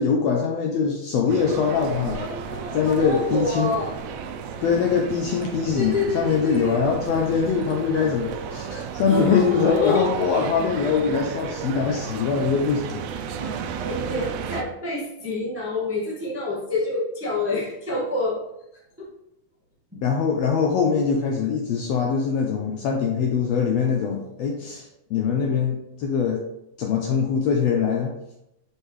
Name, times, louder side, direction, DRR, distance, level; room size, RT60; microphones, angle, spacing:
voice 1, 0.0-2.2 2.7-3.7 4.6-13.0 20.0-26.4 26.8-28.1, left 6 dB, 80° left, 1 dB, 1.5 m, -23 dB
sound 1, 1.3-14.6, right 6 dB, 90° right, 1.4 m, -33 dB
voice 2, 2.1-3.9 5.7-6.8 9.0-10.1 13.4-13.6 13.8-18.5 19.0-19.1 19.9-20.0, left 2 dB, 15° right, -6 dB, 0.5 m, -28 dB
5.7 x 5.3 x 3.2 m, 0.84 s
omnidirectional pair, 3.5 m